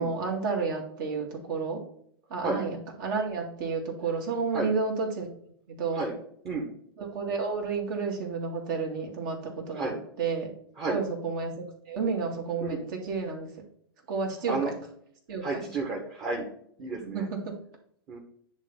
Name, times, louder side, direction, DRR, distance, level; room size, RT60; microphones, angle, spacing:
voice 1, 0.0-1.8 2.3-5.3 5.7-6.1 7.0-10.5 10.9-13.5 14.1-14.7 15.3-15.6 17.0-17.6, right 4 dB, 55° right, 1 dB, 2.3 m, -31 dB
voice 2, 15.4-16.5 16.8-17.3 18.1-18.2, right 3 dB, 30° right, -1 dB, 1.6 m, -31 dB
9.8 x 3.5 x 4.1 m, 0.66 s
figure-of-eight pair, 105°, 13 cm